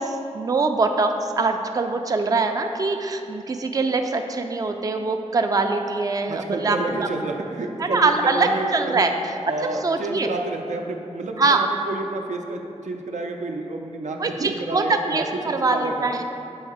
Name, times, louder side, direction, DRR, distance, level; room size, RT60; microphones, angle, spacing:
voice 1, 0.0-7.1 7.8-9.1 9.6-10.3 11.4-11.6 14.2-16.2, right 3 dB, 30° right, 5 dB, 0.3 m, -23 dB
voice 2, 6.3-9.1 9.5-16.1, right 2 dB, 85° right, 2 dB, 0.5 m, -30 dB
7.1 x 2.8 x 4.7 m, 2.8 s
wide cardioid pair, 70°, 12 cm